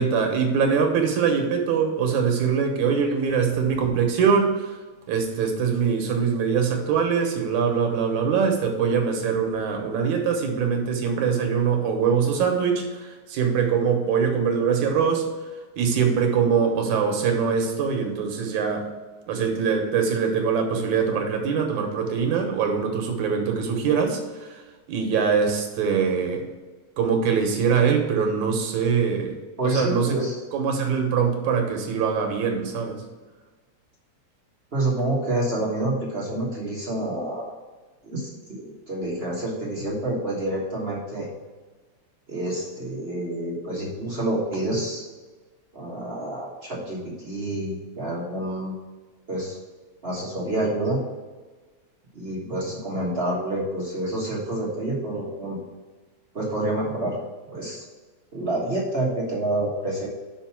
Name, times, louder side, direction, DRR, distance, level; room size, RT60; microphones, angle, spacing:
voice 1, 0.0-4.8 5.1-15.3 15.8-18.9 19.3-24.6 24.9-26.4 27.0-29.4 29.6-30.2 30.5-33.0, right 6 dB, 80° right, 3 dB, 2.5 m, -23 dB
voice 2, 29.6-30.4 34.7-37.5 38.0-41.3 42.3-45.0 45.7-48.7 49.3-49.6 50.0-51.0 52.1-55.6 56.3-57.2 57.5-57.8 58.3-60.1, right 1 dB, 35° right, -5 dB, 0.9 m, -28 dB
5.5 x 5.2 x 5.8 m, 1.3 s
omnidirectional pair, 3.3 m